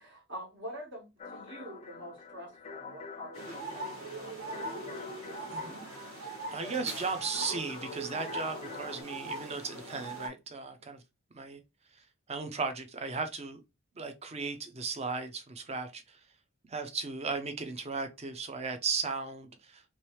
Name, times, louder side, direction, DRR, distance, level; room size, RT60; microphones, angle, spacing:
voice 1, 0.0-5.8 6.2-7.1, equal, 55° right, 1.6 m, -47 dB
sound 1, 1.2-9.0, left 5 dB, 30° left, 0.4 m, -47 dB
sound 2, 3.3-10.3, right 2 dB, 75° right, 1.9 m, -41 dB
voice 2, 5.5-5.9 6.5-11.0 11.3-11.6 12.3-13.6 14.0-16.2 16.7-19.9, right 4 dB, 30° right, 0.5 m, -36 dB
3.1 x 3.1 x 3.1 m
head